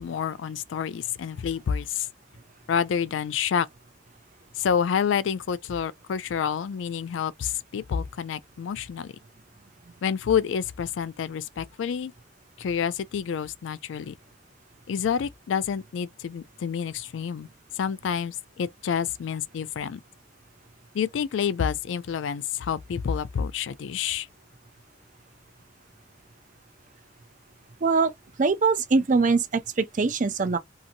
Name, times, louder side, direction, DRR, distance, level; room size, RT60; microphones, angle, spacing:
voice 1, 0.0-2.1 2.7-3.7 4.6-9.1 10.0-12.1 12.6-14.1 14.9-17.5 17.8-20.0 20.9-24.3, left 7 dB, 80° left, 0.3 m, -28 dB
voice 2, 27.8-28.1 28.4-30.6, right 4 dB, 40° right, 0.5 m, -22 dB
2.8 x 2.6 x 2.5 m
head